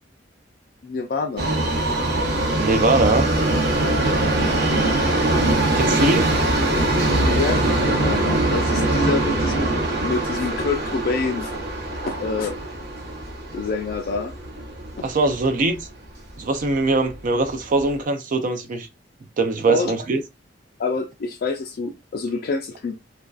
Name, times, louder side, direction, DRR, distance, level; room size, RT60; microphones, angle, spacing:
voice 1, 0.8-1.5 7.2-9.7 10.0-11.6 12.1-12.5 13.5-14.3 15.0-15.1 19.7-19.9 20.8-23.0, left 4 dB, 55° left, 0.4 m, -27 dB
Subway metro underground, 1.4-15.5 15.8-15.9 16.7-16.8 17.1-17.2 17.8-17.9, right 2 dB, 60° right, 0.8 m, -22 dB
voice 2, 2.6-3.3 5.7-6.3 15.0-15.9 16.4-18.9 19.4-20.2, right 2 dB, 45° right, 0.4 m, -21 dB
2.5 x 2.3 x 2.3 m
head